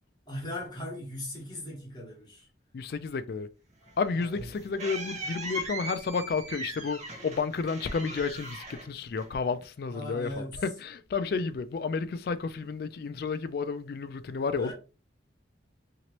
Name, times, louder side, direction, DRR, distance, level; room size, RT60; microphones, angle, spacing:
voice 1, 0.3-2.5 4.1-4.5 9.9-10.6 14.6-14.7, left 1 dB, 25° left, 1.1 m, -39 dB
voice 2, 2.7-3.5 4.0-14.7, left 4 dB, 55° left, 0.3 m, -31 dB
sound 1, 3.8-9.6, right 1 dB, 35° right, 0.8 m, -39 dB
2.9 x 2.9 x 2.9 m
head